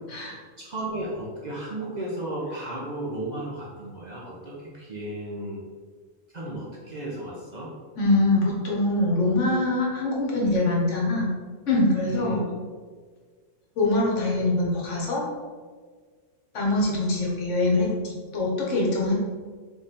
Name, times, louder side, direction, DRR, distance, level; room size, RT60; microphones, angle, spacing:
voice 1, 0.6-5.6 6.3-7.7 12.1-12.5, right 1 dB, 45° right, -5 dB, 0.7 m, -34 dB
voice 2, 8.0-11.3 11.7-12.5 13.8-15.3 16.5-19.1, left 2 dB, 70° left, -3 dB, 1.3 m, -23 dB
3.6 x 3.2 x 4.1 m, 1.5 s
omnidirectional pair, 1.3 m